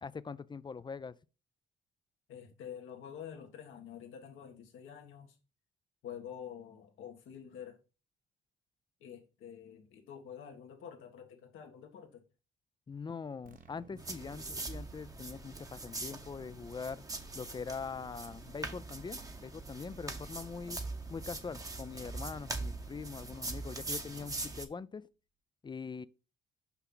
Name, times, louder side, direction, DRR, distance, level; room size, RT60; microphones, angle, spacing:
voice 1, 0.0-1.2 12.9-17.0 17.3-20.8 21.1-25.1 25.6-26.1, left 5 dB, 25° left, 0.4 m, -43 dB
voice 2, 2.3-5.4 6.0-7.8 9.0-12.2, left 8 dB, 85° left, 1.6 m, -48 dB
sound 1, 13.4-24.9, right 3 dB, 45° right, 0.8 m, -57 dB
sound 2, 14.0-24.7, right 2 dB, 15° right, 0.9 m, -42 dB
5.8 x 5.7 x 3.9 m
cardioid pair, 90°, 20 cm